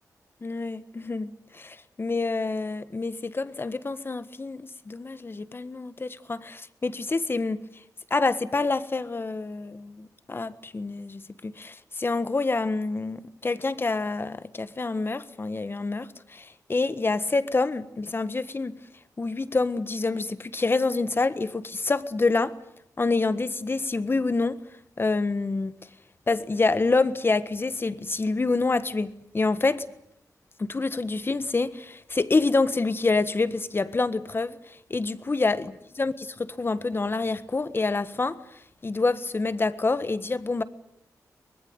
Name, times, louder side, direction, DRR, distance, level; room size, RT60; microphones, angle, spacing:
voice 1, 0.4-7.6 8.1-18.7 19.2-22.5 23.0-24.6 25.0-25.7 26.3-29.8 30.6-35.7 36.0-38.4 38.8-40.6, left 3 dB, 35° left, 1.5 m, -27 dB
24.0 x 20.5 x 9.5 m
cardioid pair, 85°, 6 cm